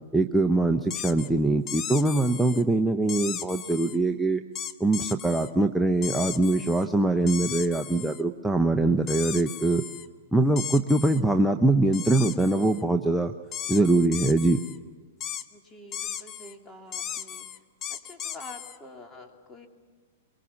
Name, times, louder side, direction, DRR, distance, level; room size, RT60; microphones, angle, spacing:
voice 1, 0.1-4.4 4.8-9.8 10.3-13.3 13.7-14.6, right 2 dB, ahead, 4 dB, 0.8 m, -23 dB
sound 1, 0.9-1.3 1.7-2.6 3.1-4.0 4.5-5.5 6.0-6.9 7.3-8.2 9.1-10.1 10.6-11.2 11.9-12.8 13.5-14.8 15.2-15.4 15.9-16.5 16.9-18.8, left 9 dB, 30° left, 1.0 m, -36 dB
voice 2, 15.5-17.6 17.9-19.7, left 2 dB, 15° left, 1 dB, 3.1 m, -47 dB
24.0 x 23.5 x 7.2 m, 1.5 s
hypercardioid pair, 115°, 0 cm